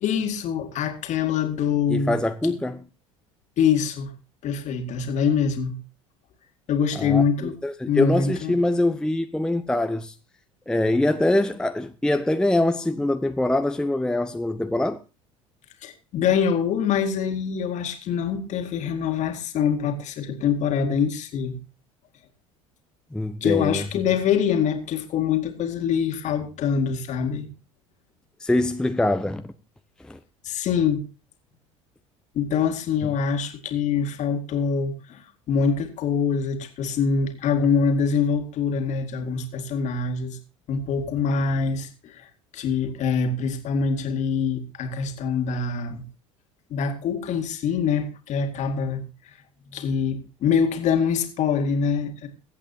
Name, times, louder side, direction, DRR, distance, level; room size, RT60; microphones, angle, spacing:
voice 1, 0.0-2.2 3.6-4.1 4.4-5.8 6.7-7.6 7.9-8.6 15.8-21.6 23.4-27.5 30.4-31.0 32.3-40.4 40.7-42.3 42.5-46.1 46.7-49.4 49.7-52.3, left 6 dB, 45° left, 2.1 m, -24 dB
voice 2, 1.9-2.8 7.0-10.1 10.7-15.0 23.1-23.8 28.4-29.5 30.0-30.2, left 1 dB, 5° left, 0.7 m, -24 dB
23.0 x 8.3 x 2.8 m
figure-of-eight pair, 65°, 17 cm